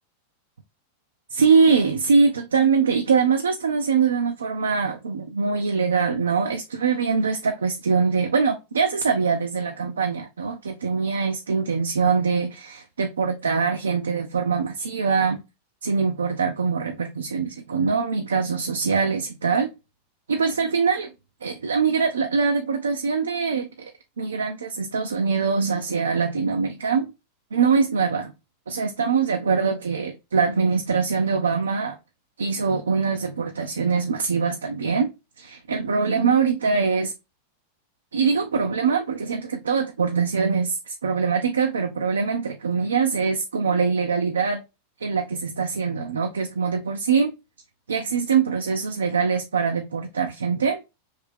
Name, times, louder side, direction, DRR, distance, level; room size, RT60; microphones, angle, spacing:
voice 1, 1.3-15.4 15.8-19.7 20.3-21.1 21.4-23.9 24.2-27.1 27.5-28.3 28.7-32.0 32.4-35.1 35.4-37.1 38.1-44.6 45.0-47.3 47.9-50.8, right 5 dB, 70° right, 0.4 m, -23 dB
3.2 x 2.8 x 3.4 m
figure-of-eight pair, 90°, 0 cm